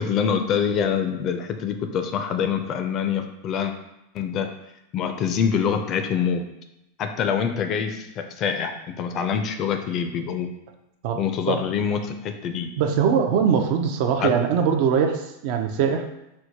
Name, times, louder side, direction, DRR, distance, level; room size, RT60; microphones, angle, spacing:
voice 1, 0.0-3.7 4.1-4.5 4.9-6.4 7.0-10.5 11.2-12.7 14.2-14.3, left 7 dB, 40° left, 7 dB, 0.4 m, -25 dB
voice 2, 12.8-16.0, right 7 dB, 60° right, 5 dB, 0.4 m, -21 dB
4.5 x 2.1 x 2.7 m, 0.88 s
hypercardioid pair, 120°, 0 cm